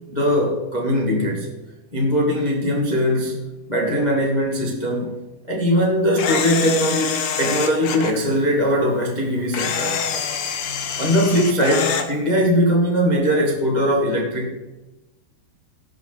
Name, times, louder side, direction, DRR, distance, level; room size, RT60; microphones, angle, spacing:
voice 1, 0.1-1.5 1.9-3.4 3.7-5.2 5.5-10.0 11.0-14.7, equal, 55° left, -2 dB, 0.4 m, -20 dB
Camera, 6.2-8.1 9.5-12.1, left 7 dB, 85° left, 1.8 m, -25 dB
18.0 x 8.6 x 4.3 m, 1.1 s
omnidirectional pair, 5.8 m